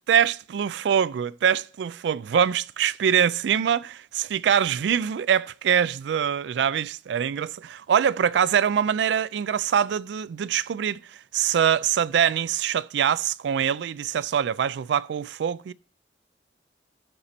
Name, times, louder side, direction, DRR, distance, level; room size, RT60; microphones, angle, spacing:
voice 1, 0.1-11.0 11.3-15.7, right 8 dB, 80° right, 0.3 m, -24 dB
12.0 x 4.1 x 4.3 m
head